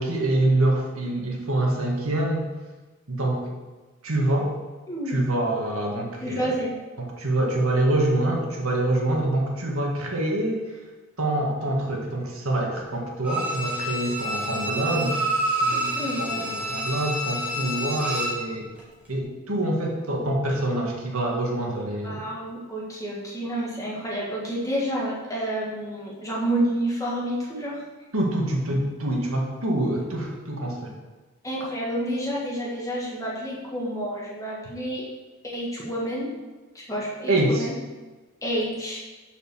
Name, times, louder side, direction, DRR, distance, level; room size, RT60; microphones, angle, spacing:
voice 1, 0.0-2.5 3.1-3.5 4.0-4.5 5.1-6.5 7.0-10.8 11.2-15.3 15.6-15.9 16.2-18.7 19.1-22.2 28.1-31.0 37.3-37.7, right 1 dB, 80° right, 0 dB, 1.8 m, -25 dB
voice 2, 4.9-5.2 6.2-6.7 15.0-15.1 15.7-16.5 22.0-27.8 31.4-35.0 35.5-36.3 36.7-37.7 38.4-39.0, right 1 dB, 15° left, -5 dB, 1.9 m, -29 dB
Bowed string instrument, 13.2-18.4 18.8-18.9, right 1 dB, 5° right, 2.0 m, -28 dB
6.8 x 6.4 x 6.1 m, 1.2 s
head